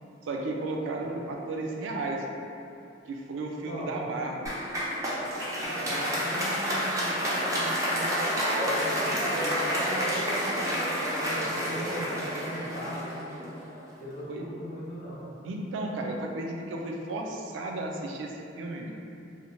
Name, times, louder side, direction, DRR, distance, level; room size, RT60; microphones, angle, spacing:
voice 1, 0.2-2.5 3.1-4.7 14.3-14.5 15.4-18.9, right 2 dB, 85° right, 1 dB, 0.3 m, -34 dB
voice 2, 3.6-3.9 5.6-8.2 8.6-10.8 11.1-13.1 14.0-15.2, equal, 40° left, -8 dB, 0.6 m, -38 dB
Applause, 4.5-13.8, equal, 20° right, 0.4 m, -29 dB
2.6 x 2.1 x 2.9 m, 2.7 s
head